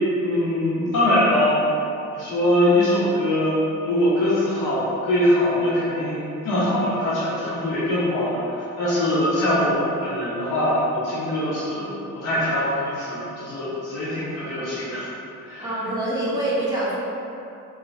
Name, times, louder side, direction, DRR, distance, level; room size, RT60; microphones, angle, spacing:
voice 1, 0.2-1.6 2.1-3.6 3.8-11.9 12.1-15.1 15.4-15.7, left 1 dB, 75° left, -10 dB, 1.1 m, -22 dB
voice 2, 15.6-17.0, right 1 dB, 10° right, -10 dB, 1.4 m, -25 dB
4.3 x 3.0 x 2.6 m, 2.7 s
cardioid pair, 75°, 32 cm